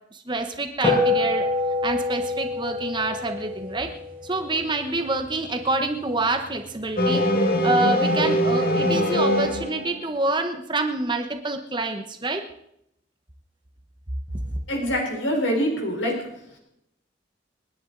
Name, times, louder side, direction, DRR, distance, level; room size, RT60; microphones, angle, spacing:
voice 1, 0.1-1.5 1.8-3.9 4.2-7.2 7.6-12.4 14.5-14.6, right 2 dB, 25° right, 6 dB, 1.1 m, -27 dB
sound 1, 0.8-5.5, left 2 dB, 10° left, 5.4 m, -26 dB
sound 2, 7.0-10.0, equal, 50° left, 1.8 m, -22 dB
voice 2, 14.7-16.2 16.5-16.6, equal, 90° left, 1 dB, 4.2 m, -25 dB
29.0 x 10.0 x 4.0 m, 0.79 s
head